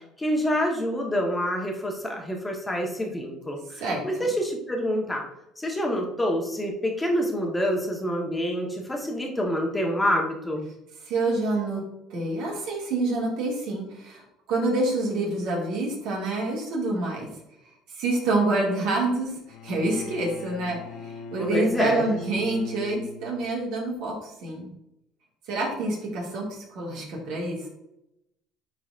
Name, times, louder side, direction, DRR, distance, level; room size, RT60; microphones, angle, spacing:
voice 1, 0.2-5.2 5.6-10.7 21.4-22.0, equal, 15° left, 1 dB, 1.3 m, -27 dB
voice 2, 3.8-4.3 11.1-11.8 12.1-14.2 14.5-17.3 17.9-19.4 19.6-24.7 25.5-27.7, right 2 dB, 70° right, -2 dB, 2.3 m, -27 dB
Bowed string instrument, 19.5-23.6, left 2 dB, 70° left, 0.8 m, -40 dB
9.8 x 4.0 x 2.5 m, 0.84 s
supercardioid pair, 95°, 0 cm